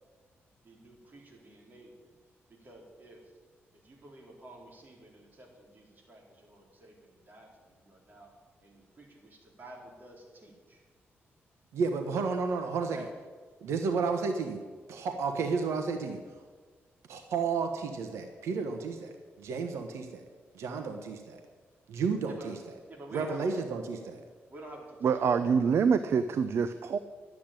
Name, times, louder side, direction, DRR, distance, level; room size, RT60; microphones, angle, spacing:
voice 1, 0.6-2.1 2.6-3.2 3.8-8.3 8.6-10.8 12.9-13.1 22.3-22.5 22.9-23.7 24.5-25.4, right 1 dB, 40° right, 0 dB, 4.0 m, -50 dB
voice 2, 11.7-13.1 13.6-14.6 14.9-16.2 17.1-20.2 20.5-21.4 21.9-22.6 23.1-24.2, right 5 dB, 90° right, 5 dB, 1.2 m, -32 dB
voice 3, 25.0-27.0, right 6 dB, 65° right, 11 dB, 0.6 m, -26 dB
12.0 x 8.5 x 8.9 m, 1.5 s
cardioid pair, 95°, 5 cm